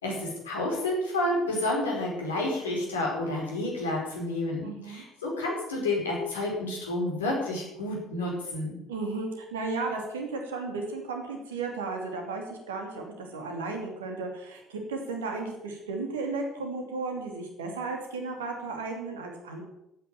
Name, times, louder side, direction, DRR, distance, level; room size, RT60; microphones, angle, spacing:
voice 1, 0.0-8.8, left 1 dB, 80° left, -1 dB, 4.7 m, -30 dB
voice 2, 4.6-5.0 8.9-19.6, right 3 dB, 75° right, 3 dB, 2.8 m, -34 dB
14.0 x 9.3 x 7.2 m, 0.88 s
figure-of-eight pair, 55°, 0 cm